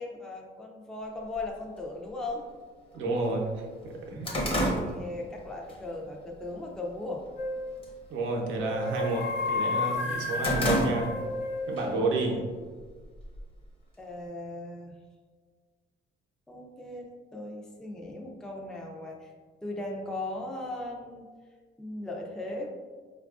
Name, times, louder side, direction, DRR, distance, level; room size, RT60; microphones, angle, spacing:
voice 1, 0.0-2.5 4.2-7.2 12.0-12.4 14.0-14.9 16.5-19.3 19.6-21.3 21.8-22.7, left 2 dB, 5° left, -1 dB, 0.4 m, -38 dB
sound 1, 1.4-1.5 2.4-2.5 2.9-3.0 3.4-5.8 6.2-6.5 6.9-7.4 7.7-8.0 8.3-9.6 9.9-11.4 11.8-11.9 12.8-13.7, equal, 25° left, 0.8 m, -30 dB
voice 2, 2.9-3.5 3.8-4.3 8.1-11.2 11.7-12.4, right 3 dB, 85° right, 0 dB, 0.7 m, -30 dB
sound 2, 7.4-7.8 8.6-12.0, left 3 dB, 60° left, 0.5 m, -32 dB
4.4 x 2.4 x 2.3 m, 1.5 s
cardioid pair, 90°, 20 cm